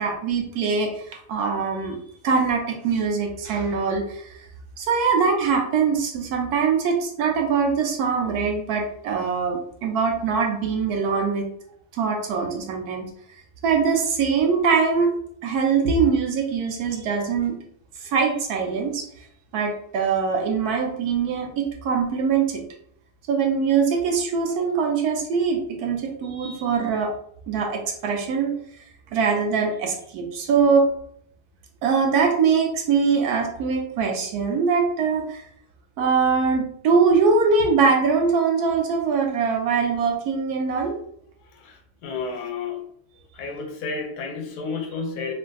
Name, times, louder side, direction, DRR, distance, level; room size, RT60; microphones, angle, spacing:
voice 1, 0.0-2.0 2.2-4.3 4.8-11.5 11.9-13.0 13.6-15.1 15.4-17.6 18.0-19.1 19.5-22.6 23.3-27.1 27.5-28.6 29.1-30.9 31.8-35.4 36.0-41.0, right 5 dB, 75° right, 2 dB, 1.1 m, -22 dB
voice 2, 41.4-42.8 43.3-45.3, left 4 dB, 75° left, 4 dB, 1.0 m, -31 dB
3.3 x 2.5 x 2.3 m, 0.64 s
omnidirectional pair, 1.7 m